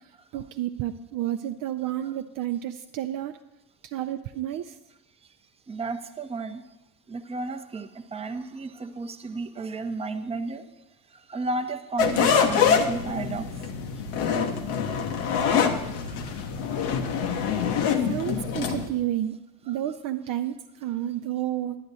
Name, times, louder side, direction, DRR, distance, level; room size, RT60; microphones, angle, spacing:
voice 1, 0.3-3.3 3.9-4.6 18.1-19.3 19.7-20.5 20.8-21.7, right 12 dB, 50° right, 6 dB, 0.6 m, -30 dB
voice 2, 5.7-6.6 7.1-10.6 11.3-13.5 17.9-18.0 19.7-19.8, right 3 dB, 15° right, 7 dB, 0.7 m, -33 dB
sound 1, 12.0-18.9, left 6 dB, 65° left, 1.1 m, -25 dB
10.5 x 9.2 x 4.1 m, 1.0 s
hypercardioid pair, 65°, 45 cm